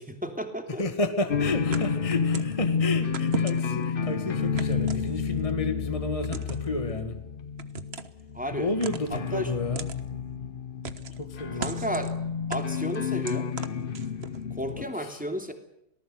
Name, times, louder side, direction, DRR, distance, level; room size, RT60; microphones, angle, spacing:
voice 1, 0.0-0.8 8.3-8.7 9.1-9.5 11.5-12.1 12.5-13.5 14.5-15.5, equal, 5° right, 5 dB, 2.8 m, -33 dB
voice 2, 0.7-7.2 8.5-9.9 11.2-11.8 14.7-15.2, left 2 dB, 20° left, 7 dB, 1.9 m, -31 dB
sound 1, 1.3-14.9, left 6 dB, 40° left, 1.0 m, -30 dB
sound 2, 1.7-2.6 3.1-3.8 4.6-5.5 6.2-6.7 7.6-8.2 8.8-9.3 9.8-10.0 10.8-11.2 11.6-12.1 12.5-14.4, right 5 dB, 40° right, 1.3 m, -37 dB
26.0 x 18.5 x 8.0 m, 0.81 s
omnidirectional pair, 1.9 m